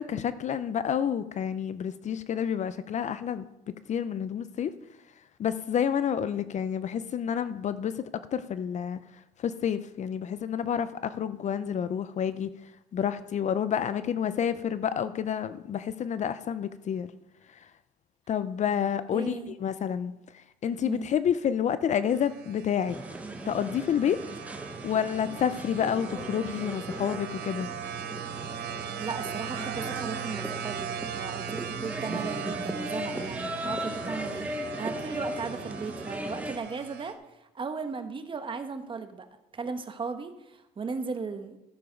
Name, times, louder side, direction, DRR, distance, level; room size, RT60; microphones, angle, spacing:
voice 1, 0.0-4.7 5.4-12.5 12.9-17.1 17.5-17.7 18.3-23.0 23.5-24.2 24.8-27.7, left 8 dB, 45° left, 0.6 m, -29 dB
voice 2, 19.1-19.5 20.8-21.1 28.7-34.5 34.8-39.3 39.5-41.6, right 5 dB, 30° right, 1.1 m, -37 dB
sound 1, 22.1-37.1, right 9 dB, 75° right, 1.2 m, -39 dB
sound 2, 22.9-36.6, right 1 dB, 10° right, 1.1 m, -37 dB
14.0 x 6.9 x 5.2 m
cardioid pair, 110°, 17 cm